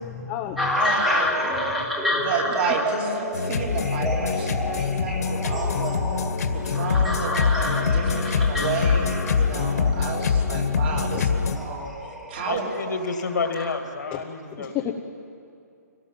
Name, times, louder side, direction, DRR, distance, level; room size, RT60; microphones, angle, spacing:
voice 1, 0.0-0.8 1.4-1.5 10.9-11.4 14.1-14.2 14.5-14.9, left 10 dB, 15° left, 2 dB, 0.8 m, -32 dB
sound 1, 0.6-13.8, left 1 dB, 5° right, 1.6 m, -29 dB
voice 2, 0.8-1.7 2.1-6.0 6.5-11.3 11.6-11.9 12.3-13.0, right 4 dB, 35° right, 0 dB, 3.3 m, -31 dB
sound 2, 3.3-11.6, left 5 dB, 65° left, 2.0 m, -24 dB
voice 3, 12.5-14.9, left 4 dB, 80° left, 5 dB, 2.5 m, -30 dB
24.5 x 18.0 x 7.4 m, 2.5 s
hypercardioid pair, 165°, 9 cm